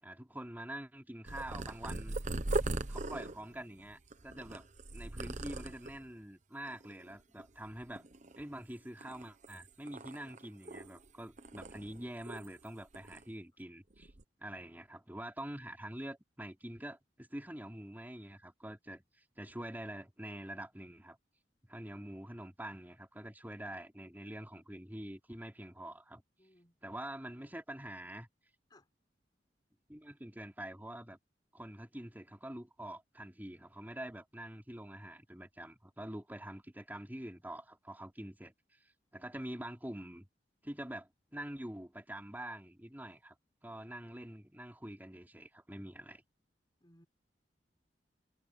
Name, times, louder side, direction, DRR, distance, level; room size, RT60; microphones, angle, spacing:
voice 1, 0.0-2.2 2.9-4.7 4.9-8.0 8.4-14.1 14.4-21.2 21.7-26.2 26.8-28.3 29.9-31.2 31.5-40.3 40.6-43.4 43.6-46.2, right 1 dB, 10° right, 4.0 m, -46 dB
Purr, 1.3-6.1 6.7-7.1 7.4-8.6 9.0-11.1 11.4-12.7 12.9-13.2 13.9-14.2, right 2 dB, 45° right, 1.1 m, -40 dB
voice 2, 26.4-26.8 28.7-28.9 39.1-39.3 43.1-43.2 46.8-47.1, left 1 dB, 25° left, 6.2 m, -64 dB
head